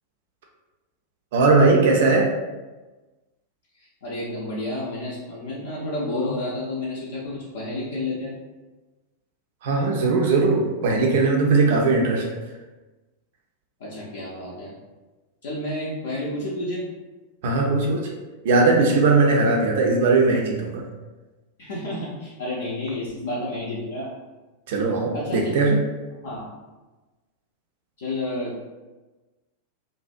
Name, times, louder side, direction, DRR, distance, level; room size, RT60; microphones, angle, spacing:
voice 1, 1.3-2.3 9.6-12.3 17.4-18.1 18.4-20.8 24.7-25.8, right 3 dB, 55° right, 0 dB, 0.3 m, -19 dB
voice 2, 3.8-8.4 13.8-14.8 15.4-16.8 21.6-24.1 25.1-25.5 26.2-26.5 28.0-28.7, left 1 dB, 60° left, -6 dB, 0.5 m, -30 dB
2.5 x 2.0 x 2.4 m, 1.2 s
figure-of-eight pair, 90°, 0 cm